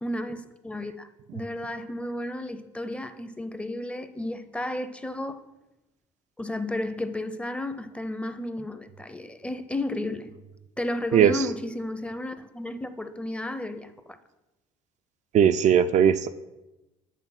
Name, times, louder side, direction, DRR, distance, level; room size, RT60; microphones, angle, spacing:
voice 1, 0.0-5.4 6.4-10.3 10.8-14.2, left 1 dB, 5° left, 0.6 m, -33 dB
voice 2, 11.1-11.4 15.3-16.3, right 8 dB, 50° right, 0.4 m, -19 dB
8.2 x 3.5 x 5.9 m
hypercardioid pair, 70°, 16 cm